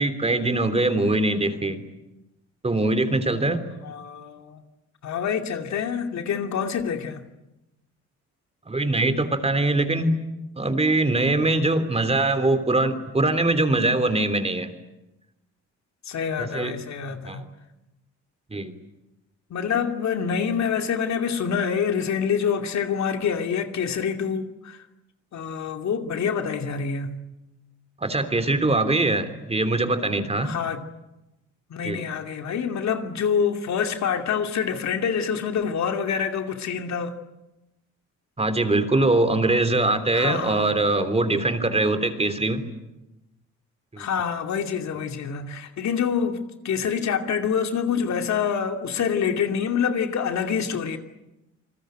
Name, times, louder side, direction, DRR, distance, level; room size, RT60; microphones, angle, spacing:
voice 1, 0.0-1.8 2.6-3.6 8.7-10.2 10.6-14.7 16.4-16.7 17.1-17.4 18.5-18.7 28.0-30.5 31.8-32.0 38.4-42.7 43.9-44.0, right 2 dB, 20° right, 3.3 m, -22 dB
voice 2, 3.8-4.6 5.0-7.3 16.1-17.4 19.5-24.8 25.3-27.2 30.4-30.8 31.7-37.1 40.1-40.7 44.0-51.0, left 7 dB, 65° left, 2.7 m, -26 dB
28.5 x 20.5 x 9.2 m
cardioid pair, 90°, 30 cm